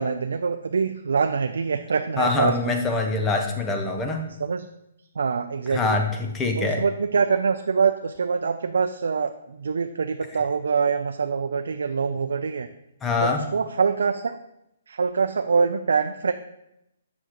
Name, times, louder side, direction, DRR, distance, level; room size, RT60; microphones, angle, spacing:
voice 1, 0.0-2.8 4.4-4.7 5.2-6.0 6.6-12.7 13.2-14.3 14.9-16.3, right 5 dB, 85° right, 7 dB, 0.4 m, -24 dB
voice 2, 2.2-4.2 5.7-6.8 13.0-13.4, left 3 dB, 10° left, 3 dB, 0.6 m, -24 dB
7.9 x 6.1 x 3.0 m, 0.83 s
hypercardioid pair, 165°, 0 cm